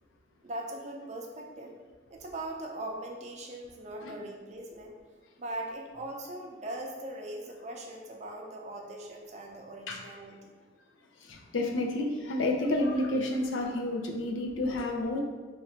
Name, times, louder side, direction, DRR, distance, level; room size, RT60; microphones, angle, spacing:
voice 1, 0.4-1.8 2.1-5.0 5.4-10.6, right 1 dB, 35° right, 1 dB, 0.5 m, -40 dB
voice 2, 11.3-15.2, left 1 dB, 80° left, 1 dB, 0.5 m, -30 dB
3.0 x 2.5 x 4.3 m, 1.4 s
head